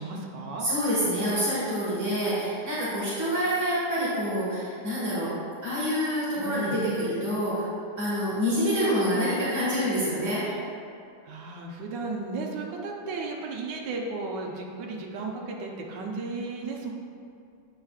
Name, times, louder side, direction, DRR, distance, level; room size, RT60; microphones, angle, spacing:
voice 1, 0.0-0.7 6.3-6.8 10.4-10.7 11.2-16.9, right 3 dB, 90° right, 0 dB, 1.5 m, -34 dB
voice 2, 0.6-5.3 5.6-7.6 8.0-10.4, equal, 10° right, -11 dB, 1.4 m, -27 dB
9.1 x 5.6 x 2.4 m, 2.5 s
omnidirectional pair, 1.8 m